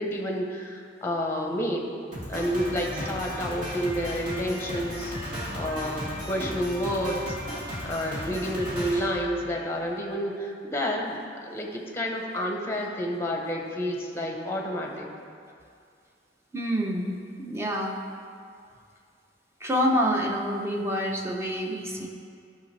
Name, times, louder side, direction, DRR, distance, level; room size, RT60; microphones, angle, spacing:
voice 1, 0.0-1.9 2.3-7.3 7.8-15.1, equal, 15° left, 1 dB, 0.9 m, -30 dB
Drum kit, 2.1-9.9, equal, 45° right, 2.0 m, -35 dB
voice 2, 16.5-18.0 19.6-22.1, equal, 15° right, 0 dB, 0.7 m, -27 dB
12.5 x 5.8 x 3.3 m, 2.4 s
head